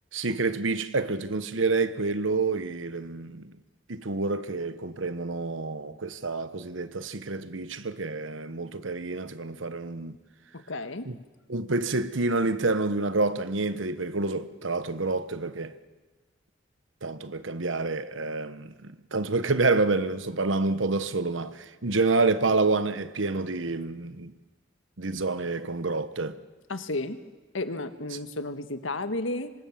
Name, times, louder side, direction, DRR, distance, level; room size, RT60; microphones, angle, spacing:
voice 1, 0.1-3.5 3.9-10.1 11.1-11.2 11.5-15.7 17.0-24.3 25.0-26.4, right 3 dB, 80° right, 1.2 m, -28 dB
voice 2, 10.5-11.1 26.7-27.2 27.5-29.5, left 2 dB, 85° left, 1.6 m, -32 dB
26.0 x 25.0 x 7.4 m
head